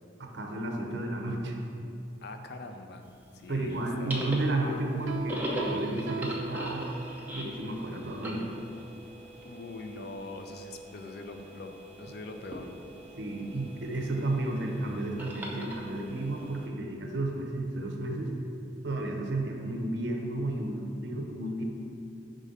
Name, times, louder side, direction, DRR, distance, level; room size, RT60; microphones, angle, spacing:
voice 1, 0.2-1.6 3.5-6.9 7.3-8.5 13.2-18.3 18.8-21.6, right 2 dB, 65° right, 2 dB, 0.7 m, -32 dB
voice 2, 2.2-3.0 3.3-4.2 9.4-12.7, left 2 dB, 55° left, 6 dB, 0.4 m, -42 dB
sound 1, 3.1-16.7, equal, 10° right, 0.6 m, -41 dB
Piano, 5.1-7.4, right 4 dB, 85° right, 0.4 m, -38 dB
5.0 x 3.7 x 5.4 m, 2.6 s
head